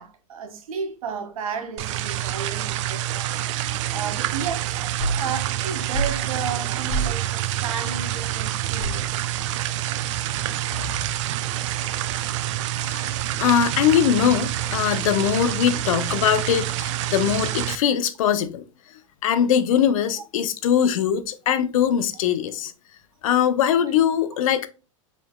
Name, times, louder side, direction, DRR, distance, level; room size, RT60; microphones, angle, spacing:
voice 1, 0.0-3.2 3.9-4.8 5.2-9.3, right 6 dB, 80° right, 0.9 m, -33 dB
sound 1, 1.8-17.8, right 13 dB, 60° right, 0.4 m, -27 dB
sound 2, 5.0-5.3 5.9-6.2 6.9-7.2 8.8-9.1 10.7-11.2, right 2 dB, 25° left, 0.9 m, -27 dB
voice 2, 13.4-18.7 19.2-22.7 23.2-24.7, left 9 dB, 70° left, 0.6 m, -21 dB
4.6 x 3.4 x 2.2 m
hypercardioid pair, 130°, 18 cm